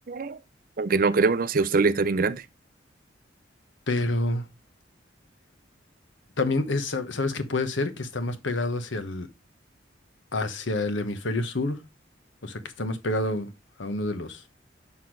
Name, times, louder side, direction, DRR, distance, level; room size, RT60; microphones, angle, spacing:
voice 1, 0.1-0.4 0.8-2.5, right 4 dB, 50° right, 0.6 m, -23 dB
voice 2, 3.9-4.4 6.4-9.3 10.3-11.8 12.4-13.5 13.8-14.5, left 2 dB, 80° left, 1.1 m, -28 dB
6.3 x 5.8 x 4.6 m
head